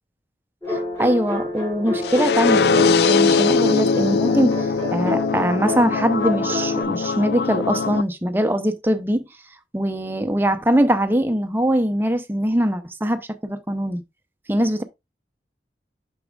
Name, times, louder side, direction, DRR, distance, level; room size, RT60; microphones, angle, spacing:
sound 1, 0.6-6.8, left 1 dB, 20° left, 5.0 m, -29 dB
voice 1, 0.7-9.2 9.7-14.0 14.5-14.8, equal, 10° right, 0.6 m, -22 dB
sound 2, 2.0-8.0, left 4 dB, 70° left, 0.3 m, -21 dB
8.4 x 6.2 x 2.3 m
head